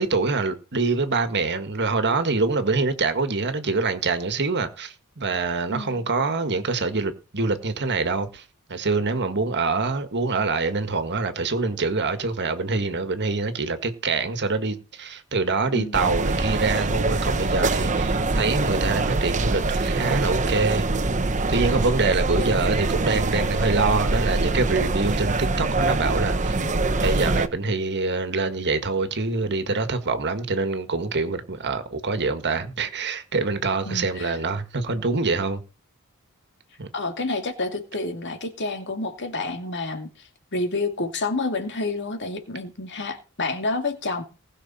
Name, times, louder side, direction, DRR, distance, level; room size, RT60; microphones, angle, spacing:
voice 1, 0.0-8.4 8.7-20.9 21.5-26.6 27.0-35.6 36.8-36.9, right 3 dB, 50° right, 1.7 m, -25 dB
voice 2, 5.7-6.1 15.7-16.2 22.3-22.7 33.8-34.4 36.9-44.2, left 3 dB, 55° left, 2.5 m, -29 dB
sound 1, 15.9-27.5, right 3 dB, 35° right, 1.0 m, -24 dB
19.5 x 6.6 x 4.3 m
head